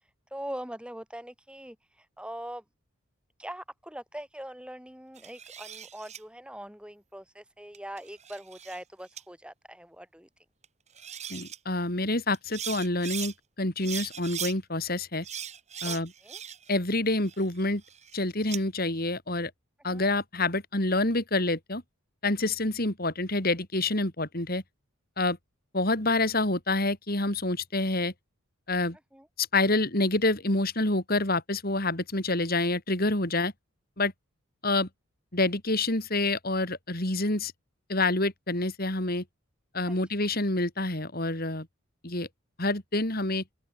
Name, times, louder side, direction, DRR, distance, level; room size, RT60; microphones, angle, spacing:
voice 1, 0.3-2.6 3.4-10.3 15.8-16.4 19.9-20.1 29.1-29.3 39.9-40.0, right 1 dB, 5° right, 7.3 m, -42 dB
sound 1, 5.2-6.2 7.7-8.8 9.2-9.3 10.6-10.7 10.9-11.6 12.3-13.3 13.8-14.5 15.2-16.8 17.1-18.6, right 9 dB, 35° right, 4.3 m, -39 dB
voice 2, 11.3-15.2 15.8-16.1 16.7-17.8 18.1-19.5 19.8-21.8 22.2-24.6 25.2-25.4 25.7-28.1 28.7-29.0 29.4-33.5 34.0-34.1 34.6-34.9 35.3-37.5 37.9-39.2 39.7-41.7 42.0-42.3 42.6-43.4, left 2 dB, 45° left, 4.2 m, -27 dB
open air
head